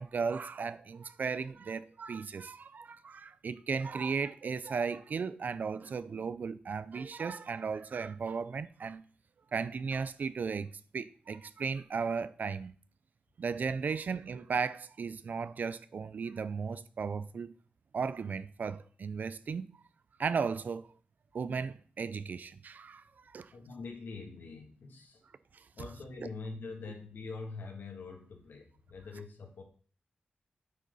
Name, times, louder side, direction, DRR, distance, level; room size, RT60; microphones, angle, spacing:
voice 1, 0.0-9.0 9.5-12.7 13.4-17.5 17.9-19.7 20.2-20.9 21.3-23.0 23.3-23.5 26.2-26.3, right 5 dB, 55° right, 0.6 m, -35 dB
voice 2, 23.5-25.2 25.7-29.6, left 4 dB, 85° left, 2.5 m, -44 dB
9.4 x 9.3 x 4.1 m
wide cardioid pair, 170°, 3 cm